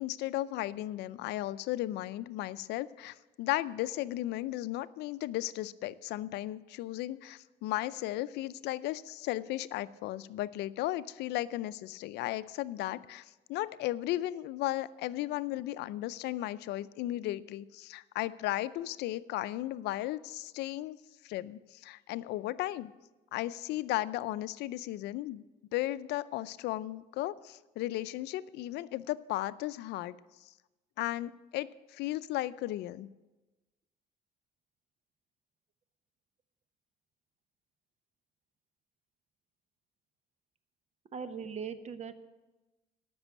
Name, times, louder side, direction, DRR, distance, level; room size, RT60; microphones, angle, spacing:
voice 1, 0.0-21.0 21.2-22.9 23.3-25.4 25.7-30.2 30.4-30.5 31.0-33.1, left 15 dB, 80° left, 16 dB, 0.5 m, -35 dB
voice 2, 41.1-42.1, right 6 dB, 40° right, 11 dB, 1.0 m, -39 dB
13.5 x 6.2 x 8.4 m, 1.1 s
cardioid pair, 110°, 17 cm